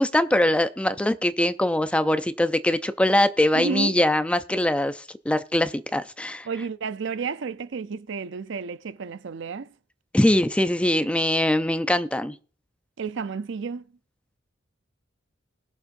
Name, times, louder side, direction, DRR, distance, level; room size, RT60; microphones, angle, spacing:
voice 1, 0.0-6.5 10.1-12.4, left 1 dB, 5° left, 0.4 m, -22 dB
voice 2, 3.5-4.0 6.4-9.7 13.0-13.8, right 5 dB, 70° right, 0.5 m, -31 dB
21.0 x 7.2 x 2.6 m
head